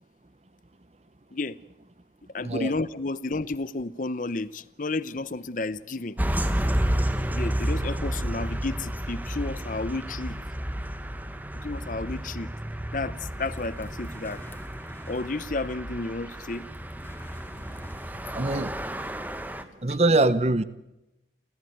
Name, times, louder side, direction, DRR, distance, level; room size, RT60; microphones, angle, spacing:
voice 1, 2.3-6.2 7.3-10.4 11.6-12.5 12.9-14.4 15.1-16.7 19.9-20.2, left 3 dB, 45° left, 0.8 m, -32 dB
sound 1, 6.2-19.6, right 1 dB, 10° right, 1.3 m, -31 dB
sound 2, 13.4-19.1, equal, 10° left, 2.2 m, -47 dB
voice 2, 18.3-18.8 19.8-20.6, right 2 dB, 35° right, 0.8 m, -23 dB
29.5 x 14.0 x 9.4 m
head